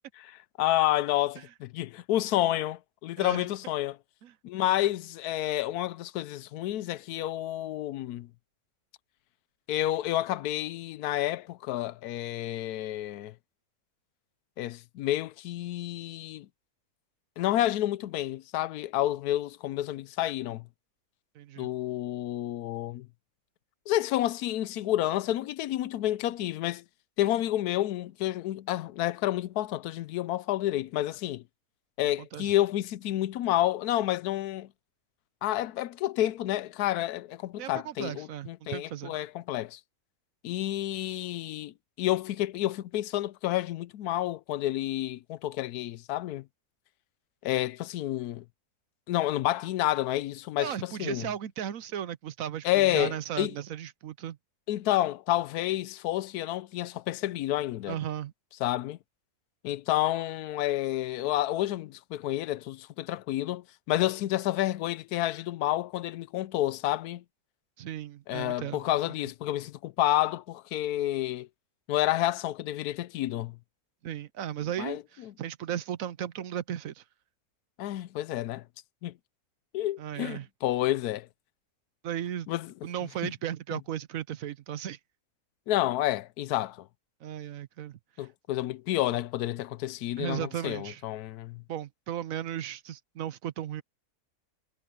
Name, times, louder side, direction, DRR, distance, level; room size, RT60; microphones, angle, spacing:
voice 1, 0.2-4.0 4.4-8.3 9.7-13.3 14.6-16.5 17.4-20.6 21.6-23.1 23.9-26.8 27.2-31.4 32.0-34.7 35.4-39.8 40.4-46.4 47.4-48.4 49.1-51.3 52.6-53.5 54.7-58.0 58.6-59.0 59.6-67.2 68.3-71.5 71.9-73.6 74.8-75.0 77.8-78.6 79.0-79.1 79.7-81.3 82.5-82.7 85.7-86.8 88.2-91.6, left 14 dB, 85° left, 1.1 m, -29 dB
voice 2, 21.3-21.7 32.2-32.5 37.6-39.1 50.6-54.4 57.9-58.3 67.8-68.8 74.0-77.0 80.0-80.5 82.0-82.5 82.8-85.0 87.2-88.3 90.2-91.0 91.7-93.8, right 10 dB, 70° right, 1.1 m, -36 dB
omnidirectional pair, 1.6 m